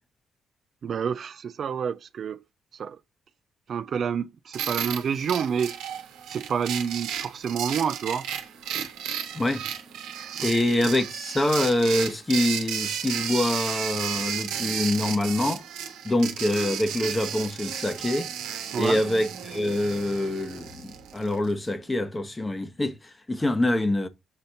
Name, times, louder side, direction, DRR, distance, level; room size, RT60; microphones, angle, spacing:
voice 1, 0.8-2.4 2.7-3.0 3.7-5.8 6.3-8.3 10.4-10.5 18.7-19.0, right 7 dB, 60° right, 0.5 m, -28 dB
sound 1, 4.5-21.5, right 9 dB, 75° right, 1.1 m, -33 dB
voice 2, 10.4-15.6 16.0-18.3 18.8-24.1, left 1 dB, 20° left, 1.1 m, -25 dB
6.7 x 4.1 x 3.9 m
hypercardioid pair, 50°, 0 cm